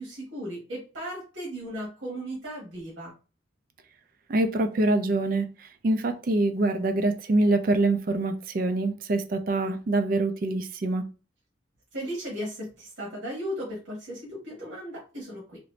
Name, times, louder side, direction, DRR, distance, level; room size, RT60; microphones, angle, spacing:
voice 1, 0.0-3.1 11.9-15.6, equal, 90° right, 1.3 m, -36 dB
voice 2, 4.3-11.1, right 2 dB, 45° right, 0.4 m, -25 dB
3.0 x 2.5 x 3.1 m
head